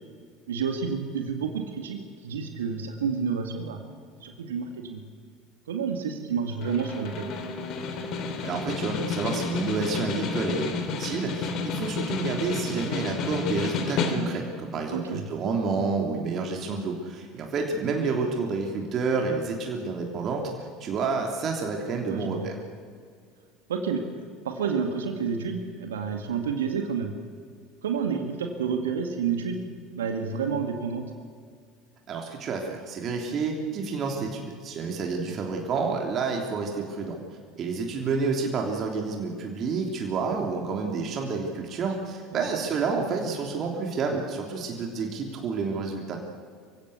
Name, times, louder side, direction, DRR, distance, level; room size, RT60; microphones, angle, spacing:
voice 1, 0.5-3.8 4.2-5.0 5.7-7.3 14.9-15.2 22.1-22.5 23.7-24.1 24.4-27.1 27.8-29.6 29.9-31.1 35.3-35.4 42.3-42.4, right 6 dB, 75° right, 5 dB, 2.0 m, -29 dB
Snare drum, 6.6-14.6, left 4 dB, 50° left, 3.1 m, -31 dB
voice 2, 8.4-10.7 11.0-22.6 32.1-37.2 37.5-46.2, right 4 dB, 45° right, 1 dB, 3.2 m, -29 dB
25.5 x 16.0 x 8.2 m, 2.1 s
figure-of-eight pair, 70°, 0 cm